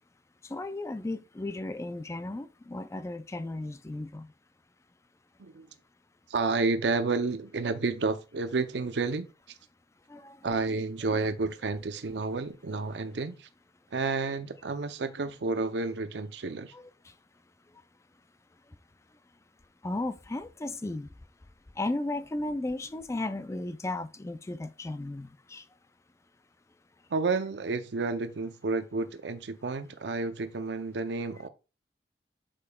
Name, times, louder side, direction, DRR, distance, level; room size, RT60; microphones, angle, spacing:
voice 1, 0.4-4.3 10.1-10.5 16.7-17.1 19.8-21.1 21.8-25.7, left 2 dB, 15° left, 0.4 m, -35 dB
voice 2, 6.3-9.6 10.4-13.5 13.9-16.7 27.1-31.5, right 3 dB, 80° right, 0.6 m, -30 dB
8.4 x 6.7 x 2.3 m
head